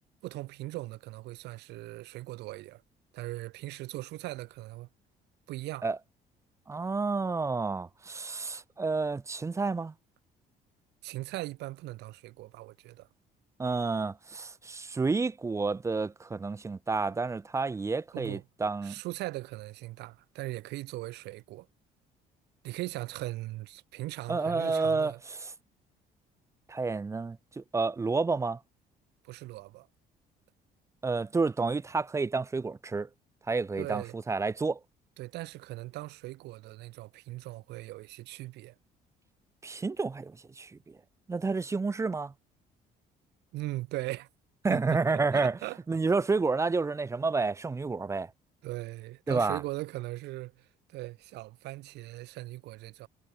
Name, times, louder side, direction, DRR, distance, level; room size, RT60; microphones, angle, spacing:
voice 1, 0.0-2.8 3.1-4.9 5.5-5.9 11.0-13.1 18.1-18.4 18.8-21.7 22.6-25.2 29.2-29.9 33.8-34.1 35.2-38.8 43.5-44.3 44.7-45.8 48.6-53.1, right 18 dB, 85° right, 2.0 m, -39 dB
voice 2, 6.7-9.9 13.6-19.0 24.3-25.1 26.7-28.6 31.0-33.1 33.5-34.8 39.6-40.9 41.3-42.3 44.6-45.6 45.9-48.3 49.3-49.6, right 4 dB, 15° right, 0.5 m, -30 dB
cardioid pair, 110°, 17 cm